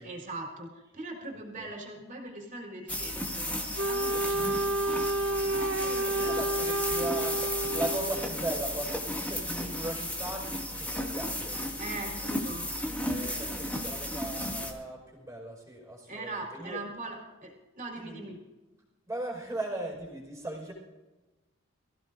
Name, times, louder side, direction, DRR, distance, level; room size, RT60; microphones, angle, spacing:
voice 1, 0.0-6.4 11.8-12.7 16.1-18.4, right 2 dB, 40° right, -1 dB, 3.8 m, -41 dB
sound 1, 2.9-14.7, left 1 dB, 10° left, 2.1 m, -34 dB
Wind instrument woodwind instrument, 3.8-8.4, right 1 dB, 65° right, 0.9 m, -30 dB
voice 2, 5.8-11.6 13.0-16.8 18.0-18.3 19.1-20.7, right 1 dB, 15° right, -2 dB, 5.1 m, -38 dB
25.0 x 15.5 x 2.6 m, 1.1 s
head